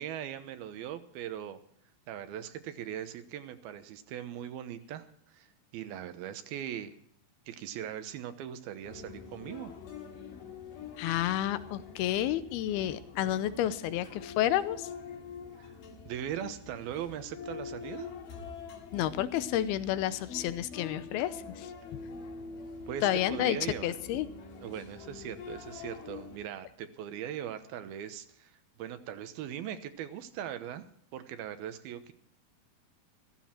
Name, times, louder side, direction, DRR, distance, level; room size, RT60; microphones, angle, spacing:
voice 1, 0.0-1.6 2.1-7.0 7.5-9.7 15.6-15.7 16.1-18.1 22.9-23.9 24.6-30.8 31.1-32.1, right 10 dB, 80° right, 10 dB, 2.9 m, -40 dB
sound 1, 8.8-26.4, left 5 dB, 65° left, 3.4 m, -45 dB
voice 2, 11.0-14.9 18.9-21.7 23.0-23.6 23.8-24.3, left 12 dB, 85° left, 14 dB, 2.7 m, -30 dB
15.0 x 14.5 x 4.4 m, 0.64 s
omnidirectional pair, 4.4 m